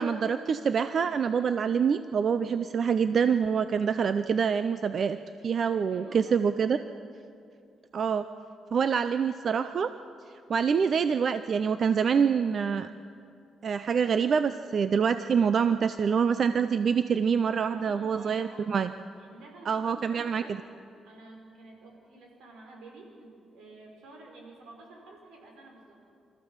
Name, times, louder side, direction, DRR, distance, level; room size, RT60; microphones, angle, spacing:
voice 1, 0.0-5.2 5.4-6.8 7.9-8.3 8.7-9.9 10.5-12.9 13.6-18.9 19.7-20.4, right 6 dB, 45° right, 11 dB, 0.5 m, -26 dB
voice 2, 5.7-6.4 17.7-18.7 19.3-20.6 21.0-26.0, right 2 dB, 80° right, 0 dB, 5.3 m, -50 dB
25.5 x 14.5 x 7.3 m, 2.4 s
cardioid pair, 140°, 0 cm